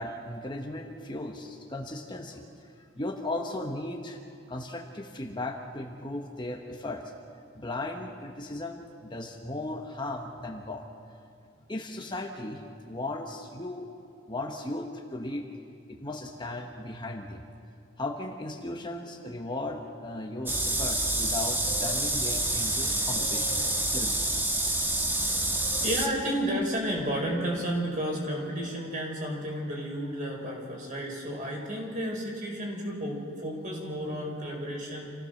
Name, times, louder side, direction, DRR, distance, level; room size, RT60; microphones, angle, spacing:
voice 1, 0.0-2.4 3.0-4.2 4.5-7.0 7.5-10.9 11.7-13.9 14.3-15.5 15.9-17.4 18.0-23.6 23.9-24.2 25.3-25.4 25.7-25.8, left 2 dB, 20° left, 2 dB, 1.2 m, -36 dB
sound 1, 20.5-26.1, right 1 dB, 10° right, 1.5 m, -28 dB
voice 2, 22.8-23.7 25.1-35.1, equal, 40° right, -1 dB, 5.1 m, -32 dB
27.5 x 16.0 x 6.5 m, 2.5 s
head